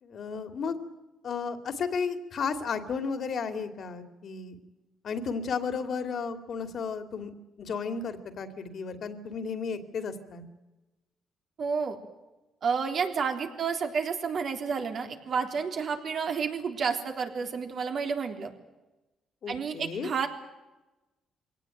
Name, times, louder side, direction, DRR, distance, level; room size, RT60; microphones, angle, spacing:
voice 1, 0.0-0.8 1.2-4.6 5.0-7.3 7.6-10.4 19.4-20.1, left 5 dB, 60° left, 9 dB, 2.7 m, -33 dB
voice 2, 11.6-12.0 12.6-18.5 19.5-20.3, right 6 dB, 55° right, 4 dB, 3.6 m, -30 dB
22.5 x 18.0 x 9.2 m, 1.1 s
cardioid pair, 90°, 0 cm